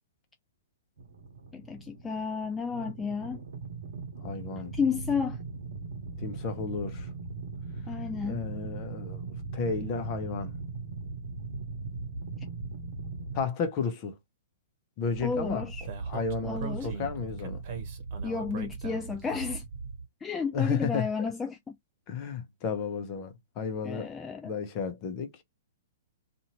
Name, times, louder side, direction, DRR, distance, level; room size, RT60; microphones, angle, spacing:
sound 1, 1.0-13.4, right 4 dB, 70° right, 0.8 m, -39 dB
voice 1, 1.5-3.4 4.7-5.4 7.9-8.5 15.2-15.9 16.4-16.9 18.2-19.6 20.2-21.7 23.8-24.5, left 5 dB, 15° left, 0.4 m, -32 dB
voice 2, 4.2-4.7 6.2-7.1 8.2-9.2 9.5-10.6 13.3-14.2 15.0-15.7 16.1-17.6 20.5-21.3 22.1-24.1 24.4-25.4, left 5 dB, 40° left, 0.9 m, -33 dB
Speech, 15.1-20.0, right 5 dB, 50° right, 1.1 m, -38 dB
2.7 x 2.6 x 2.9 m
figure-of-eight pair, 115°, 0 cm